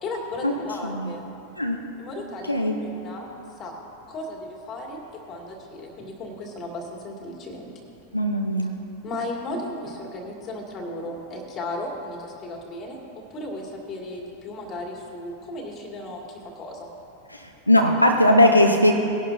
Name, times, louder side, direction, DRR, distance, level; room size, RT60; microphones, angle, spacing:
voice 1, 0.0-1.3 2.0-3.3 3.6-3.8 4.1-7.7 9.0-13.0 13.3-16.9, left 1 dB, 30° left, -1 dB, 2.3 m, -35 dB
voice 2, 8.1-8.8 17.7-18.9, left 1 dB, 85° left, 2 dB, 0.7 m, -19 dB
19.5 x 11.0 x 2.7 m, 2.9 s
figure-of-eight pair, 90°, 0 cm